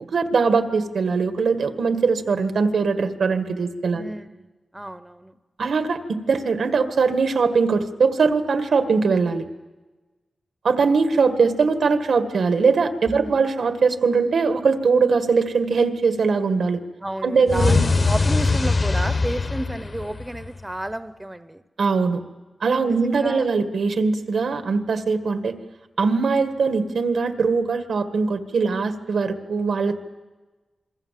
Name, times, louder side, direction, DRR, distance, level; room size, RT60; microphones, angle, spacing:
voice 1, 0.0-4.1 5.6-9.4 10.6-16.8 17.2-17.8 21.8-22.2 22.6-25.5 26.0-30.0, right 4 dB, 85° right, 8 dB, 1.7 m, -21 dB
voice 2, 3.9-4.5 4.7-5.3 13.1-13.4 17.0-21.6 22.8-23.5, right 1 dB, 10° right, 12 dB, 0.7 m, -32 dB
sound 1, 17.5-20.6, left 3 dB, 40° left, 1.0 m, -21 dB
27.0 x 22.5 x 7.6 m, 1.2 s
wide cardioid pair, 165°, 0 cm